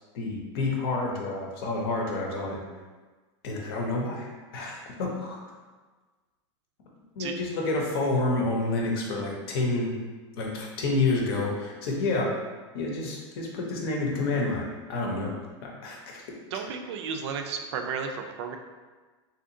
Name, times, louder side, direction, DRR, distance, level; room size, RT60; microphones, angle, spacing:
voice 1, 0.1-2.6 3.4-4.3 4.5-5.4 7.2-9.9 10.3-12.3 12.7-15.3 15.6-16.2, left 2 dB, 55° left, -1 dB, 0.7 m, -29 dB
voice 2, 16.5-18.6, right 6 dB, 70° right, 5 dB, 0.4 m, -33 dB
3.7 x 2.8 x 2.6 m, 1.3 s
supercardioid pair, 160°, 15 cm